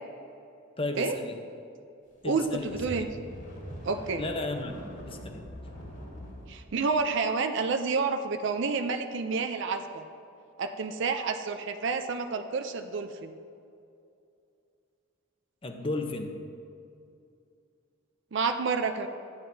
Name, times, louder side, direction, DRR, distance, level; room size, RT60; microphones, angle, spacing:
voice 1, 0.8-1.4 2.2-3.1 4.2-4.8 5.1-5.4 15.6-16.3, left 2 dB, 30° left, 5 dB, 0.7 m, -34 dB
voice 2, 2.2-3.1 3.8-4.2 6.5-10.0 10.6-13.3 18.3-19.1, right 4 dB, 65° right, 7 dB, 0.5 m, -29 dB
sound 1, 2.3-6.6, equal, 75° left, 2.4 m, -43 dB
13.5 x 9.5 x 2.7 m, 2.5 s
head